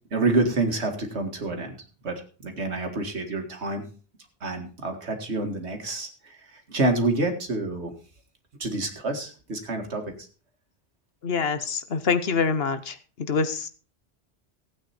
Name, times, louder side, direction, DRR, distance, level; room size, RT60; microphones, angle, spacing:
voice 1, 0.1-1.8 2.0-3.8 4.4-7.9 8.6-10.0, right 2 dB, 85° right, 4 dB, 2.3 m, -28 dB
voice 2, 11.2-12.9 13.3-13.7, left 5 dB, 65° left, 11 dB, 1.2 m, -25 dB
16.0 x 8.7 x 4.4 m, 0.38 s
omnidirectional pair, 1.1 m